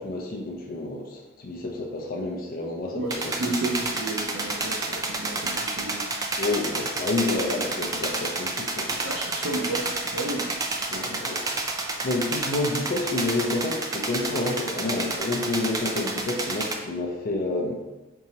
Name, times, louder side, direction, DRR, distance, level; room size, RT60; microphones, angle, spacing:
voice 1, 0.0-3.3 6.4-9.0 10.9-17.8, left 2 dB, 45° left, 1 dB, 0.5 m, -29 dB
voice 2, 2.9-6.0 9.0-10.6, right 2 dB, 85° right, -4 dB, 0.5 m, -32 dB
sound 1, 3.1-16.7, right 2 dB, 20° right, 0.3 m, -30 dB
4.6 x 2.9 x 2.8 m, 1.1 s
head